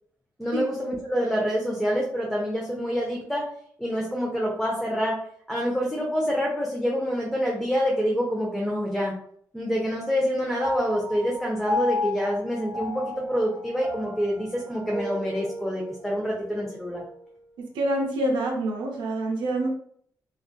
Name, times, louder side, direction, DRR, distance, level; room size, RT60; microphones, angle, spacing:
voice 1, 0.4-3.5 3.8-9.2 9.5-17.0, equal, 5° left, -2 dB, 0.6 m, -27 dB
Piano, 10.6-17.3, left 2 dB, 30° right, 1.1 m, -34 dB
voice 2, 17.6-19.7, right 1 dB, 85° right, 1 dB, 0.5 m, -26 dB
2.4 x 2.3 x 2.2 m, 0.64 s
supercardioid pair, 55°, 8 cm